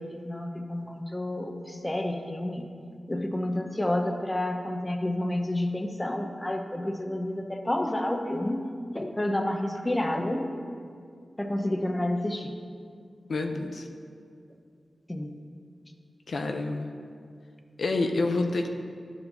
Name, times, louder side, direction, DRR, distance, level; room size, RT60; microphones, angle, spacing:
voice 1, 0.0-2.7 3.1-10.5 11.4-12.5 15.1-15.3, left 1 dB, 20° left, 5 dB, 0.7 m, -30 dB
voice 2, 13.3-13.9 16.3-16.9 17.8-18.7, left 3 dB, 75° left, 4 dB, 0.5 m, -28 dB
10.5 x 7.1 x 2.7 m, 2.2 s
cardioid pair, 60°, 0 cm